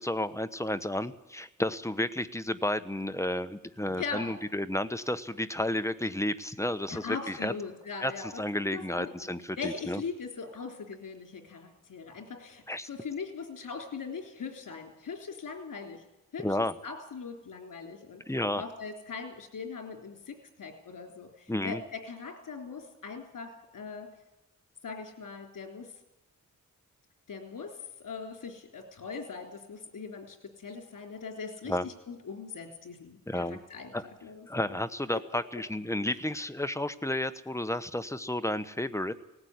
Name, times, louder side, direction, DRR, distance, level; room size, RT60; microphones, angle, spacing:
voice 1, 0.0-7.5 8.0-10.0 12.7-12.9 16.4-16.7 18.3-18.6 21.5-21.8 31.7-31.9 33.3-33.6 33.9-34.1 34.5-39.1, left 1 dB, 10° left, 11 dB, 1.1 m, -32 dB
voice 2, 4.0-4.3 6.9-8.4 8.7-9.3 9.6-16.0 16.3-18.2 18.6-24.1 24.8-25.9 27.3-33.9 34.2-34.5 35.1-35.2, left 5 dB, 75° left, 4 dB, 3.6 m, -40 dB
19.0 x 14.5 x 9.6 m, 0.96 s
wide cardioid pair, 85°, 32 cm